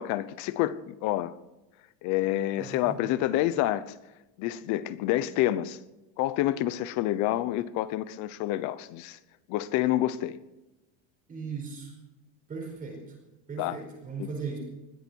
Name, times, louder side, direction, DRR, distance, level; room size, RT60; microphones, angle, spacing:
voice 1, 0.0-1.3 2.0-3.9 4.4-5.8 6.2-9.2 9.5-10.4 13.6-13.8 14.2-14.3, left 14 dB, 50° left, 0.8 m, -28 dB
voice 2, 2.6-3.0 11.3-11.9 12.5-13.1 13.5-14.6, right 5 dB, 20° right, 4.9 m, -37 dB
20.0 x 14.0 x 4.6 m
cardioid pair, 175°, 39 cm